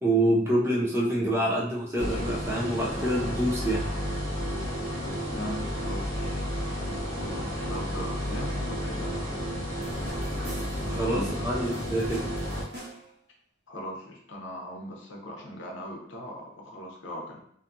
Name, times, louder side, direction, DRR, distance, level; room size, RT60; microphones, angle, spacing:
voice 1, 0.0-3.8 11.0-12.3, right 1 dB, 15° right, -4 dB, 0.3 m, -26 dB
sound 1, 2.0-12.6, equal, 85° right, 0.7 m, -32 dB
voice 2, 5.2-6.8 7.1-9.4 10.8-11.5 12.9-13.0 13.7-17.4, left 1 dB, 90° left, 0 dB, 0.7 m, -40 dB
sound 2, 9.8-11.0 11.6-13.2, right 1 dB, 60° right, 1.1 m, -45 dB
2.6 x 2.3 x 2.6 m, 0.68 s
head